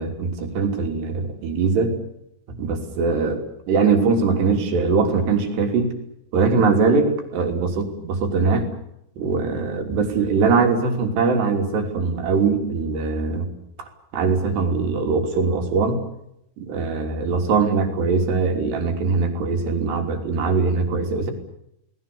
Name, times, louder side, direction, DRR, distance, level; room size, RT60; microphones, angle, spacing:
voice 1, 0.0-2.0 2.6-5.9 6.3-8.7 9.2-13.5 13.8-13.9 14.1-16.0 16.6-21.3, right 4 dB, 80° right, 3 dB, 5.4 m, -21 dB
30.0 x 19.5 x 7.0 m, 0.79 s
omnidirectional pair, 4.7 m